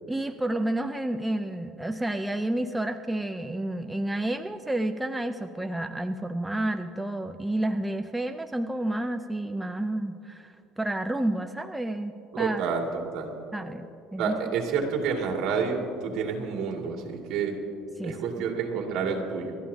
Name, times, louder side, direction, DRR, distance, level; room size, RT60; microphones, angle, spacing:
voice 1, 0.1-10.5 10.8-12.6 13.5-14.4 18.0-18.1, right 1 dB, 5° right, 7 dB, 0.5 m, -30 dB
voice 2, 12.3-13.3 14.2-17.6 18.0-19.5, right 5 dB, 65° right, 1 dB, 2.4 m, -29 dB
29.5 x 13.5 x 2.8 m, 2.7 s
cardioid pair, 120°, 0 cm